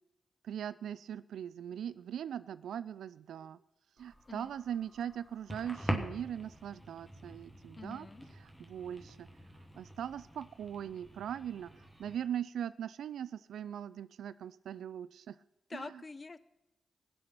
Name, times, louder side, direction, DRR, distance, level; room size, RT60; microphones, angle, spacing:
voice 1, 0.4-3.6 4.0-8.1 8.4-9.3 9.8-15.4 15.7-16.0, right 9 dB, 85° right, 17 dB, 0.4 m, -40 dB
sound 1, 4.0-12.2, equal, ahead, 2.8 m, -44 dB
voice 2, 7.8-8.2 15.7-16.4, left 3 dB, 40° left, 15 dB, 0.7 m, -46 dB
20.0 x 7.8 x 6.0 m, 0.95 s
supercardioid pair, 45°, 0 cm